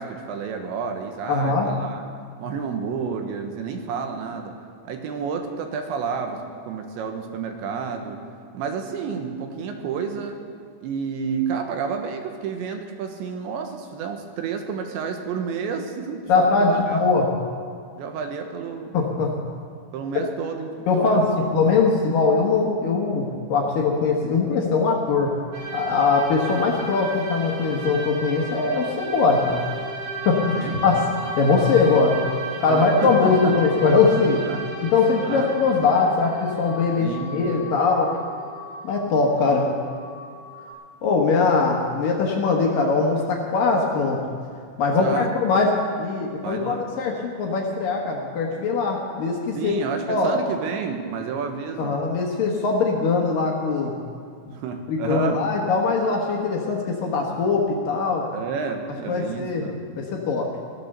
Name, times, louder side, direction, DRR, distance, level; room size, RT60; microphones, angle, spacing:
voice 1, 0.0-2.0 2.4-4.6 4.8-8.2 8.5-10.4 10.8-17.3 18.0-19.0 19.9-20.7 21.0-21.3 30.6-30.8 32.7-33.5 34.4-34.6 35.2-35.5 37.0-37.3 45.0-45.4 46.4-46.8 49.6-52.0 54.5-55.4 58.3-59.8, right 6 dB, 80° right, 5 dB, 3.4 m, -30 dB
voice 2, 1.3-1.7 16.3-17.3 18.9-19.4 20.9-25.4 25.7-29.6 30.3-30.6 30.8-31.1 31.4-32.2 32.6-34.4 34.8-38.1 38.8-39.7 41.0-44.2 44.8-45.7 46.0-49.8 50.1-50.4 51.8-53.9 54.5-54.6 54.9-58.2 59.1-59.7 60.0-60.5, left 4 dB, 65° left, 0 dB, 2.5 m, -21 dB
sound 1, 25.5-40.7, right 2 dB, 55° right, 3.7 m, -35 dB
17.0 x 12.0 x 6.7 m, 2.1 s
omnidirectional pair, 5.2 m